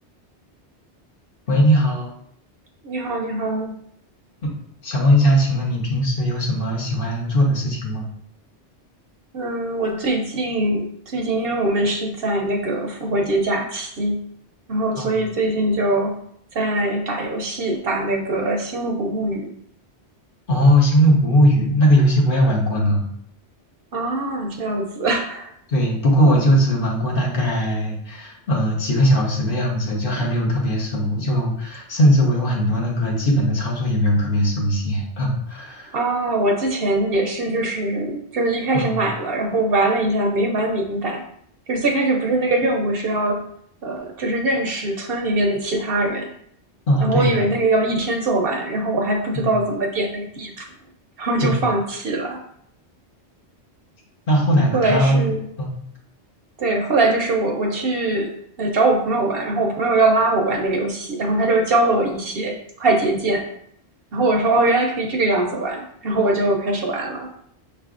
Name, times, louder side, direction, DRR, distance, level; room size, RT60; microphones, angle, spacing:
voice 1, 1.5-2.1 4.8-8.1 15.0-15.1 20.5-23.0 25.7-35.9 38.7-39.0 46.9-47.5 49.3-49.5 51.4-51.6 54.3-55.2 55.6-55.8, equal, 50° left, -2 dB, 1.1 m, -19 dB
voice 2, 2.8-3.7 9.3-14.2 14.7-16.1 16.5-19.5 23.9-25.5 35.9-41.2 41.7-43.4 43.8-46.3 47.0-50.7 51.2-52.4 54.7-55.4 56.6-58.3 58.6-62.5 62.8-63.4 64.1-67.3, right 2 dB, 60° right, 3 dB, 0.8 m, -22 dB
5.7 x 3.3 x 2.4 m, 0.68 s
omnidirectional pair, 1.2 m